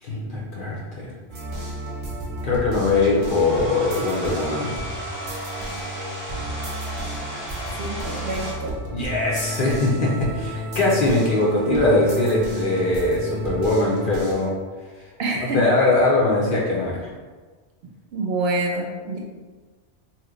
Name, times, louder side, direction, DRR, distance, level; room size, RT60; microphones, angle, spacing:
voice 1, 0.0-1.1 2.4-4.7 8.9-14.5 15.5-17.1, left 2 dB, 55° left, -5 dB, 0.7 m, -21 dB
sound 1, 1.3-14.5, equal, 35° right, 0.5 m, -32 dB
Domestic sounds home sounds, 2.9-8.5, equal, 10° right, 0.8 m, -35 dB
voice 2, 7.8-8.8 15.2-15.6 18.1-19.2, right 2 dB, 65° right, -1 dB, 0.7 m, -26 dB
2.8 x 2.1 x 3.7 m, 1.4 s
omnidirectional pair, 1.2 m